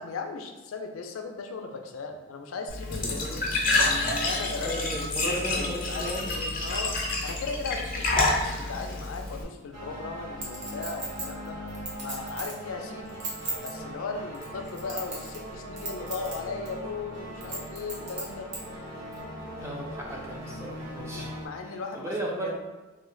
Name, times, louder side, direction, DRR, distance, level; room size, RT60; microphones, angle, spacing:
voice 1, 0.0-3.3 3.8-11.6 12.0-13.2 13.6-18.5 21.1-22.6, left 4 dB, 85° left, 5 dB, 0.4 m, -37 dB
Glass / Trickle dribble / Fill (with liquid), 2.7-9.4, left 2 dB, 45° left, 0.6 m, -28 dB
voice 2, 4.6-6.3 8.2-8.3 19.6-21.3 21.6-22.6, right 1 dB, 15° right, -3 dB, 0.5 m, -35 dB
sound 1, 9.7-21.5, equal, 80° right, 1.3 m, -40 dB
Chink clink, 10.4-12.6 13.1-13.7 14.3-15.5 15.8-16.3 16.7-16.8 17.4-18.6 19.1-19.2, right 3 dB, 60° right, 1.0 m, -35 dB
3.1 x 2.1 x 3.8 m, 1.2 s
head